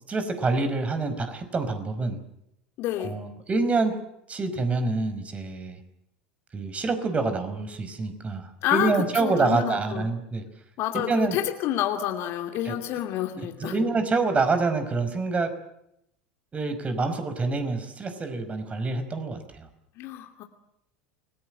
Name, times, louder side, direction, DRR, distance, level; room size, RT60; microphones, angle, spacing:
voice 1, 0.1-2.2 3.0-4.0 4.3-5.8 6.5-10.4 11.1-11.4 12.7-12.8 13.6-15.5 16.5-19.7, right 3 dB, 25° right, 9 dB, 5.2 m, -26 dB
voice 2, 2.8-3.1 8.6-10.1 10.8-13.8 20.0-20.4, left 12 dB, 50° left, 5 dB, 2.6 m, -29 dB
29.0 x 21.0 x 7.8 m, 0.79 s
figure-of-eight pair, 80°, 5 cm